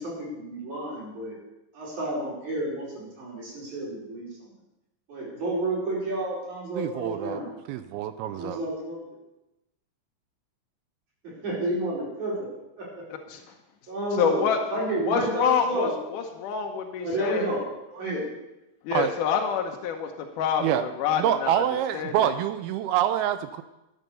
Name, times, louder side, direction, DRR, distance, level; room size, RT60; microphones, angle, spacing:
voice 1, 0.0-1.4 1.7-4.5 5.1-7.5 8.3-9.0 11.2-12.5 12.8-13.0 13.9-14.4 14.7-15.9 17.0-17.6 17.9-18.3, right 1 dB, 45° right, -6 dB, 6.4 m, -30 dB
voice 2, 6.8-7.4 7.7-8.6 18.9-19.1 20.6-20.8 21.2-23.6, right 11 dB, 85° right, 11 dB, 2.2 m, -26 dB
voice 3, 14.2-14.6 15.1-17.5 18.8-20.1 20.4-21.6 21.9-22.3, left 7 dB, 75° left, 3 dB, 1.9 m, -27 dB
13.0 x 9.2 x 6.8 m, 0.95 s
omnidirectional pair, 4.9 m